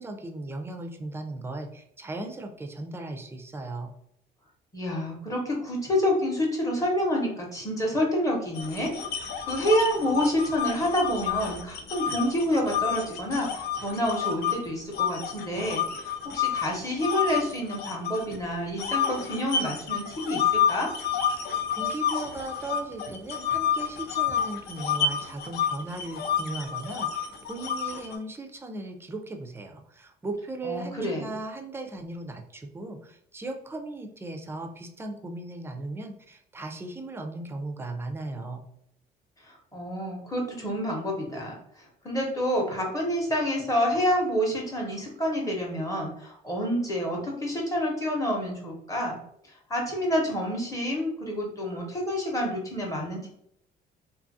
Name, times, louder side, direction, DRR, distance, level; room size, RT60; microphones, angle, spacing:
voice 1, 0.0-3.9 21.4-38.7, right 2 dB, 15° right, 4 dB, 0.4 m, -37 dB
voice 2, 4.7-20.9 30.6-31.3 39.5-41.5 42.0-49.2 49.7-53.3, equal, 20° left, -1 dB, 0.8 m, -28 dB
sound 1, 8.5-14.6 14.9-18.4 18.8-28.2, left 8 dB, 70° left, 0.5 m, -29 dB
2.6 x 2.4 x 2.6 m, 0.71 s
cardioid pair, 110°, 17 cm